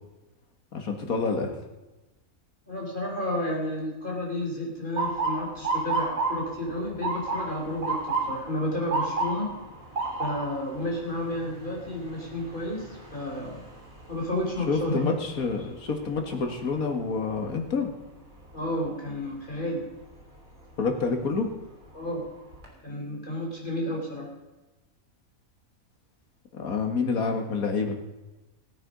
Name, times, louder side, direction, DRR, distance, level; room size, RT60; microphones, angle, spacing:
voice 1, 0.7-1.6 14.7-17.9 20.8-21.5 26.6-28.0, left 4 dB, 80° left, 4 dB, 2.2 m, -28 dB
voice 2, 2.7-9.5 10.2-13.7 14.1-15.2 18.5-19.9 21.9-22.3 22.8-24.3, left 1 dB, 35° left, -1 dB, 3.9 m, -31 dB
Motor vehicle (road) / Siren, 5.0-16.9 17.3-17.7 18.5-18.8 20.7-20.9 21.5-21.6 22.0-22.7, right 3 dB, 65° right, 4.0 m, -33 dB
17.0 x 8.9 x 5.2 m, 1.1 s
omnidirectional pair, 1.5 m